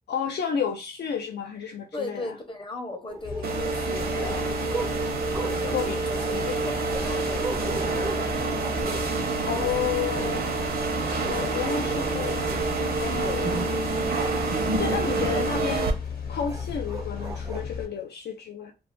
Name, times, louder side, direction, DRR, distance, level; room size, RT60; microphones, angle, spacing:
voice 1, 0.1-2.3 5.7-6.6 9.5-10.6 11.2-12.6 13.0-13.8 14.6-15.9 16.3-18.7, left 7 dB, 90° left, 0.4 m, -31 dB
voice 2, 1.9-4.9 5.4-8.7 9.6-9.7 11.2-11.7 12.0-12.2 13.2-13.5 15.2-15.4, left 2 dB, 30° left, 0.6 m, -38 dB
sound 1, 3.1-9.8 10.1-10.5 11.2-12.7 13.2-14.1 14.7-14.9 15.7-15.9 16.5-17.6, right 3 dB, 20° right, 0.4 m, -39 dB
sound 2, 3.2-17.9, left 6 dB, 65° left, 0.8 m, -36 dB
sound 3, 3.4-15.9, right 4 dB, 65° right, 0.6 m, -28 dB
2.5 x 2.3 x 3.5 m
wide cardioid pair, 175°, 17 cm